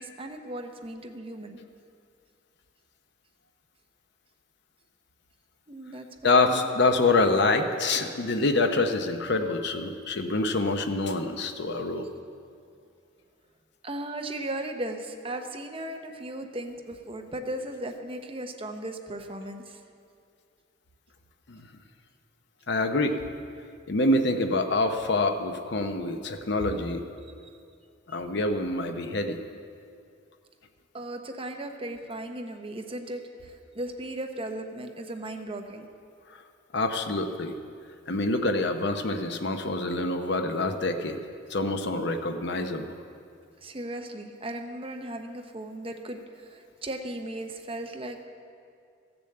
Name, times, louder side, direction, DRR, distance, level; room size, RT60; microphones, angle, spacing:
voice 1, 0.0-1.6 5.7-6.1 6.4-6.7 12.2-12.4 13.8-19.8 30.9-35.8 43.6-48.3, right 1 dB, 30° right, 4 dB, 0.9 m, -37 dB
voice 2, 6.2-12.1 21.5-21.7 22.7-23.2 23.9-27.0 28.1-29.4 36.3-36.4 36.7-37.5 38.1-41.2 41.5-42.9, left 2 dB, 60° left, 6 dB, 0.8 m, -26 dB
15.0 x 7.0 x 7.7 m, 2.4 s
head